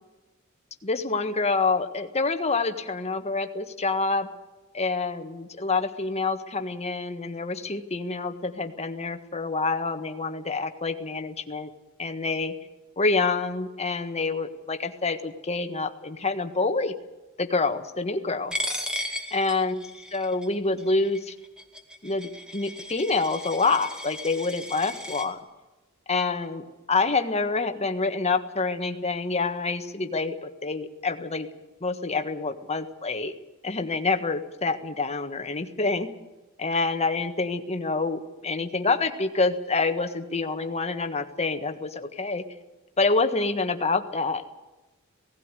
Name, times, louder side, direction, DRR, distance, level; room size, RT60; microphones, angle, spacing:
voice 1, 0.8-4.3 4.7-11.7 12.0-12.5 13.0-16.9 17.4-18.5 19.3-19.8 20.1-21.3 22.0-25.4 26.1-31.5 31.8-33.3 33.6-36.1 36.6-42.4 43.0-44.5, left 3 dB, 30° left, 7 dB, 1.6 m, -27 dB
Coin (dropping), 18.5-25.3, left 1 dB, 5° right, 2.4 m, -36 dB
18.0 x 16.0 x 9.8 m, 1.1 s
head